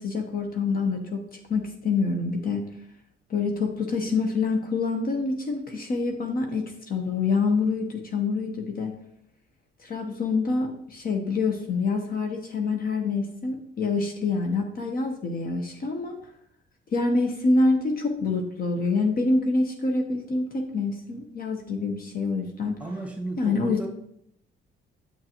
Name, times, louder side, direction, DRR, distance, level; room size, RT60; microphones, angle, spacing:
voice 1, 0.0-2.6 3.3-9.0 9.8-16.2 16.9-22.8 23.4-23.9, left 3 dB, 50° left, 3 dB, 0.9 m, -26 dB
voice 2, 22.8-23.9, right 2 dB, 5° right, -1 dB, 1.8 m, -34 dB
7.0 x 6.5 x 2.9 m, 0.73 s
cardioid pair, 90°, 20 cm